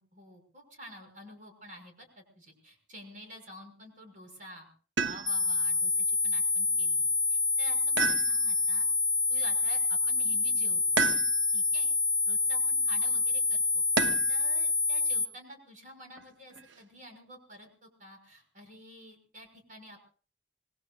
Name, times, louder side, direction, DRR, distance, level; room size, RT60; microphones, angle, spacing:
voice 1, 0.1-4.7 5.0-8.9 9.3-11.0 11.5-11.9 12.2-13.8 14.3-20.0, equal, 45° right, 3 dB, 6.1 m, -49 dB
sound 1, 5.0-5.6 8.0-8.8 11.0-11.7 14.0-14.5 16.2-16.8, right 5 dB, 80° right, 1.1 m, -31 dB
sound 2, 5.3-15.3, left 4 dB, 25° left, 2.5 m, -27 dB
27.0 x 20.5 x 2.5 m, 0.43 s
head